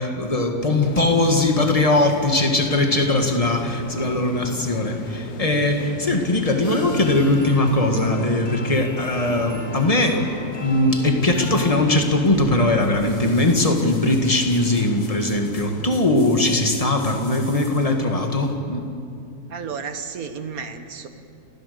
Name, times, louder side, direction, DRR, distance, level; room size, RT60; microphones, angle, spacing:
voice 1, 0.0-10.2 10.6-18.8, left 2 dB, 20° left, 3 dB, 1.9 m, -20 dB
sound 1, 0.8-16.0, left 5 dB, 65° left, 1.7 m, -37 dB
sound 2, 3.8-12.3, left 1 dB, 40° left, 4.1 m, -39 dB
sound 3, 12.8-18.0 18.5-18.6, left 2 dB, 80° left, 4.8 m, -45 dB
voice 2, 19.5-21.1, right 6 dB, 55° right, 8 dB, 1.6 m, -32 dB
29.0 x 15.5 x 7.0 m, 2.5 s
omnidirectional pair, 1.9 m